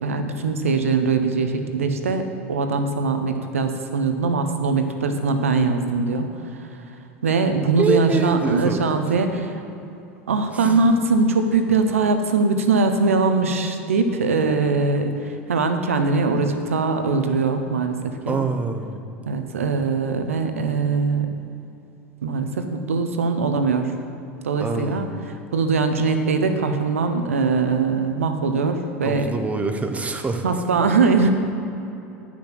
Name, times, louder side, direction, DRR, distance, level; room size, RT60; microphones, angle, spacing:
voice 1, 0.0-2.2 2.5-6.3 6.6-6.7 7.2-9.6 10.3-15.1 15.5-18.4 19.3-21.3 22.2-23.9 24.4-29.3 30.4-31.3, right 4 dB, 85° right, 7 dB, 0.8 m, -21 dB
voice 2, 7.8-9.2 10.5-10.8 18.3-19.2 24.6-25.2 29.0-30.4, right 3 dB, 20° right, 6 dB, 1.0 m, -25 dB
10.0 x 6.1 x 6.0 m, 2.9 s
hypercardioid pair, 85°, 7 cm